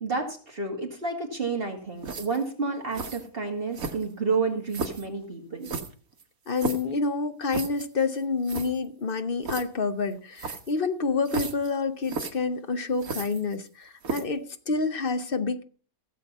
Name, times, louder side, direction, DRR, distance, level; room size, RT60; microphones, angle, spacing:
voice 1, 0.0-5.7, right 4 dB, 40° right, 2.3 m, -30 dB
sound 1, 2.0-2.5 2.9-3.2 3.7-4.2 4.7-5.1 5.6-6.9 7.5-7.9 8.2-8.3 8.4-8.7 9.4-9.6 10.4-10.7 11.3-11.7 12.0-12.3 13.0-13.7 14.0-14.4, right 4 dB, 75° right, 1.8 m, -34 dB
voice 2, 6.5-15.6, left 4 dB, 45° left, 1.0 m, -28 dB
16.0 x 7.8 x 5.4 m
omnidirectional pair, 1.5 m